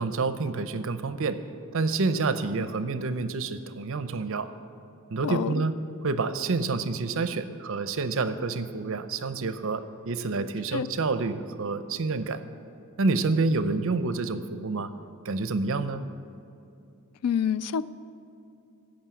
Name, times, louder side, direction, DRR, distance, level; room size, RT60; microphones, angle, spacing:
voice 1, 0.0-1.4 1.7-4.5 5.1-5.7 6.0-12.4 13.0-14.9 15.2-16.0, right 3 dB, 65° right, 11 dB, 0.6 m, -28 dB
voice 2, 5.2-5.6 10.7-10.9 17.2-17.9, left 7 dB, 85° left, 17 dB, 0.3 m, -27 dB
13.5 x 5.3 x 8.3 m, 2.7 s
head